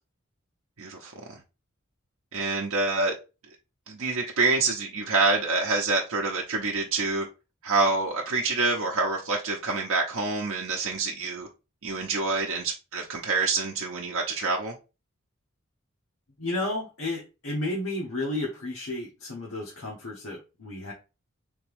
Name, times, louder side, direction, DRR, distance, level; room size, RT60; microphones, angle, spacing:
voice 1, 0.8-1.4 2.3-3.1 3.9-7.3 7.6-11.5 11.8-14.7, right 3 dB, 70° right, 0.7 m, -27 dB
voice 2, 16.4-20.9, left 2 dB, 70° left, 1.1 m, -32 dB
3.5 x 3.5 x 3.4 m
head